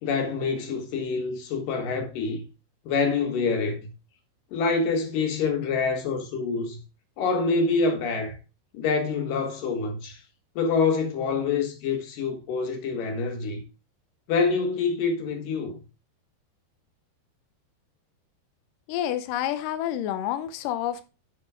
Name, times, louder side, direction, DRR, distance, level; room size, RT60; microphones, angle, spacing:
voice 1, 0.0-2.4 2.9-3.9 4.5-6.8 7.2-8.4 8.7-10.2 10.6-13.6 14.3-15.8, left 4 dB, 60° left, 2.8 m, -26 dB
voice 2, 18.9-21.0, left 11 dB, 90° left, 1.9 m, -28 dB
7.6 x 7.4 x 3.5 m
omnidirectional pair, 4.8 m